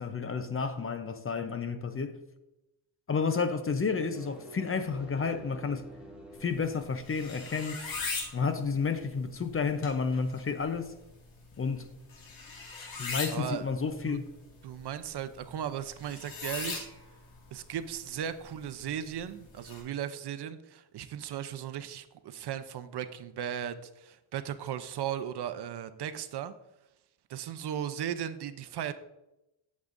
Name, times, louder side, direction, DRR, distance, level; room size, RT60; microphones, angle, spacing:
voice 1, 0.0-2.2 3.1-5.8 6.4-7.8 8.3-10.9 11.6-11.9 13.0-14.3, left 5 dB, 25° left, 0.6 m, -31 dB
sound 1, 4.0-6.8, equal, ahead, 2.1 m, -48 dB
sound 2, 6.3-19.8, left 4 dB, 70° left, 2.6 m, -42 dB
voice 2, 13.3-13.6 14.0-14.2 14.6-16.9 17.5-26.5 27.3-28.9, right 9 dB, 55° right, 0.7 m, -36 dB
11.5 x 7.4 x 2.6 m
cardioid pair, 115°, 49 cm